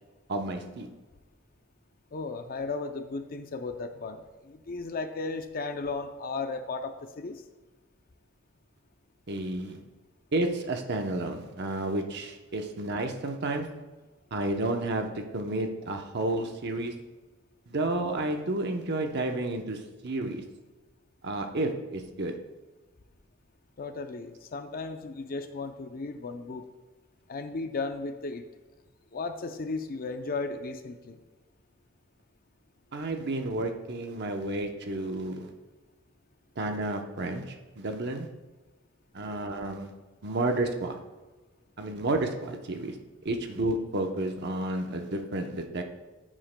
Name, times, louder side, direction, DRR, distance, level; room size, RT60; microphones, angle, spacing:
voice 1, 0.3-0.9 9.3-9.8 10.3-13.8 14.3-17.0 17.7-20.4 21.2-22.4 32.9-35.5 36.6-38.3 39.1-39.9 40.2-41.0 41.8-43.0 43.2-45.8, right 2 dB, 55° right, 4 dB, 0.8 m, -31 dB
voice 2, 2.1-7.4 23.8-26.6 27.3-28.5 29.1-31.2, left 3 dB, 45° left, 8 dB, 0.5 m, -35 dB
14.0 x 7.4 x 2.2 m, 1.2 s
head